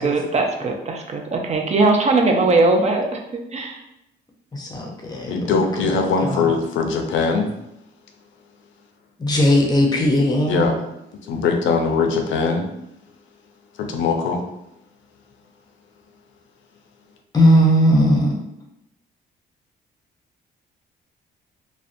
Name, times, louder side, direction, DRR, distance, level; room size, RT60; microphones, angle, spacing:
voice 1, 0.0-3.8, right 3 dB, 35° right, 2 dB, 0.3 m, -20 dB
voice 2, 4.5-5.3 5.8-5.9 6.2-6.4 9.2-10.7 17.3-18.3, equal, 20° left, 0 dB, 0.6 m, -17 dB
voice 3, 5.3-7.5 10.5-10.8 11.2-12.7 13.8-14.4, left 4 dB, 75° left, 4 dB, 0.4 m, -21 dB
2.5 x 2.1 x 2.5 m, 0.84 s
cardioid pair, 90°, 20 cm